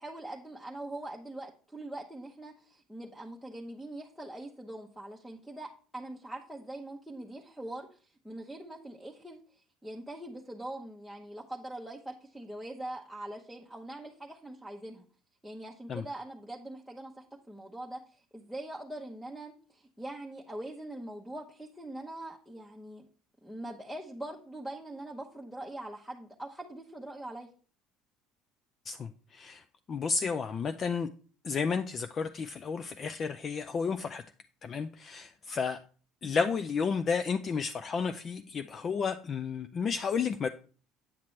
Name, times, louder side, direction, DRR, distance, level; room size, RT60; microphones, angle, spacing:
voice 1, 0.0-15.1 15.4-23.1 23.4-27.5, right 1 dB, ahead, 0 dB, 0.9 m, -43 dB
voice 2, 28.9-31.1 31.4-34.2 34.6-35.8 36.2-40.5, left 5 dB, 40° left, 8 dB, 0.4 m, -32 dB
8.6 x 5.9 x 3.2 m, 0.41 s
supercardioid pair, 100°, 0 cm